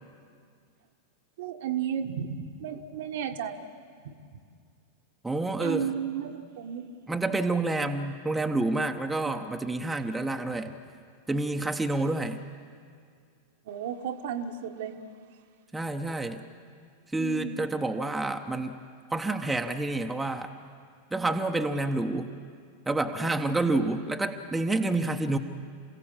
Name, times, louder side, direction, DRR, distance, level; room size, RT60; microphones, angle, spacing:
voice 1, 1.4-3.7 4.0-4.4 5.6-6.9 9.2-9.3 10.6-10.7 13.6-15.0 17.2-17.6 23.2-23.5, right 8 dB, 55° right, 6 dB, 1.4 m, -34 dB
voice 2, 5.2-5.9 7.1-10.7 11.3-12.4 15.7-16.4 17.1-18.8 19.1-20.5 21.1-22.3 22.9-25.4, right 2 dB, 5° right, 4 dB, 1.1 m, -28 dB
28.5 x 16.0 x 7.4 m, 2.2 s
figure-of-eight pair, 90°, 0 cm